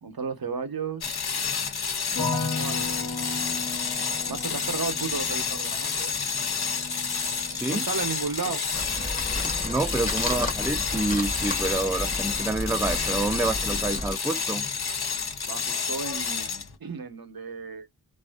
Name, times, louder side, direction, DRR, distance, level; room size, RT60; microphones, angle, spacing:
voice 1, 0.0-1.3 2.5-2.8 3.6-3.7 4.2-6.1 7.7-8.6 15.4-17.9, right 5 dB, 65° right, 0.7 m, -34 dB
sound 1, 1.0-16.7, left 6 dB, 70° left, 0.6 m, -29 dB
sound 2, 2.1-13.2 13.5-14.2, left 3 dB, 90° left, 1.0 m, -38 dB
voice 2, 7.5-7.8 9.6-14.7, right 2 dB, 5° right, 0.3 m, -28 dB
sound 3, 8.7-14.1, left 1 dB, 20° left, 0.8 m, -33 dB
2.4 x 2.3 x 2.2 m
wide cardioid pair, 45°, 39 cm